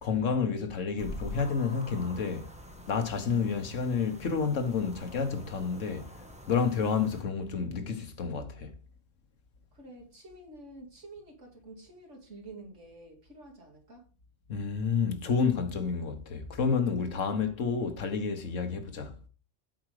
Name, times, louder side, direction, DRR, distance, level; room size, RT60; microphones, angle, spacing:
voice 1, 0.0-2.5 2.9-6.1 6.5-8.7 14.5-19.1, left 5 dB, 85° left, 1.5 m, -30 dB
sound 1, 1.0-7.2, left 1 dB, 5° right, 1.1 m, -46 dB
voice 2, 3.2-3.6 9.7-14.1, right 2 dB, 75° right, 2.6 m, -48 dB
8.0 x 4.9 x 4.8 m
omnidirectional pair, 1.3 m